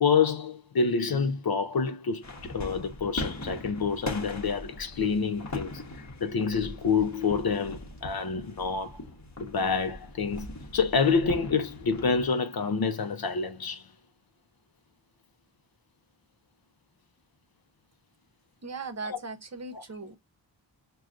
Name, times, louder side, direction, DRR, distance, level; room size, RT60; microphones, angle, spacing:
voice 1, 0.0-5.8 6.2-9.0 9.4-13.9 19.0-19.2 19.7-19.8, left 5 dB, 55° left, 0.6 m, -27 dB
sound 1, 2.2-12.3, left 1 dB, 40° left, 1.0 m, -40 dB
voice 2, 18.6-20.2, right 4 dB, 35° right, 0.8 m, -38 dB
6.1 x 2.3 x 2.4 m
wide cardioid pair, 70°, 43 cm